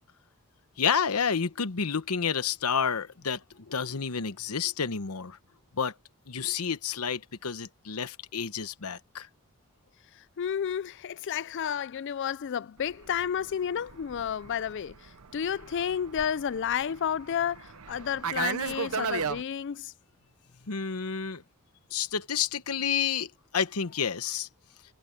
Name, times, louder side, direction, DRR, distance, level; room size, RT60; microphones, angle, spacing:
voice 1, 0.8-3.4 3.7-5.4 5.8-5.9 6.3-9.3 20.7-21.4 21.9-24.5, left 6 dB, 85° left, 1.0 m, -30 dB
voice 2, 10.4-19.9, left 8 dB, 55° left, 0.4 m, -31 dB
Fixed-wing aircraft airplane, 12.9-19.4, right 6 dB, 85° right, 0.8 m, -36 dB
head